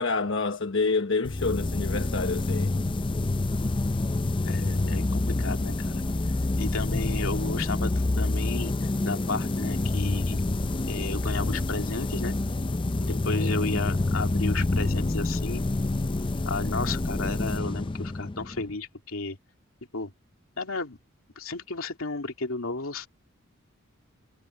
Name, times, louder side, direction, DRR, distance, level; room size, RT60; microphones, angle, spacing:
voice 1, 0.0-2.8 13.1-13.6, left 4 dB, 65° left, 1.2 m, -28 dB
sound 1, 1.3-18.8, left 2 dB, 25° left, 0.5 m, -27 dB
voice 2, 4.4-6.0 6.6-8.7 9.0-10.4 10.9-12.4 13.0-15.6 16.5-19.4 19.9-20.1 20.6-21.0 21.4-23.1, left 3 dB, 80° left, 2.6 m, -33 dB
head